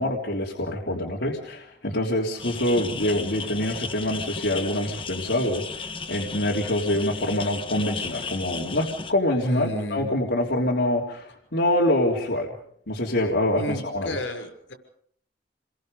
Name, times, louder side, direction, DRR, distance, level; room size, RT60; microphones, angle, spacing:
voice 1, 0.0-12.5 12.9-14.2, left 1 dB, 65° left, -3 dB, 3.3 m, -25 dB
sound 1, 2.4-9.1, left 5 dB, 25° left, 1.3 m, -35 dB
voice 2, 9.4-10.1 13.6-14.7, left 1 dB, 80° left, 4 dB, 6.3 m, -31 dB
28.5 x 22.5 x 5.3 m, 0.66 s
head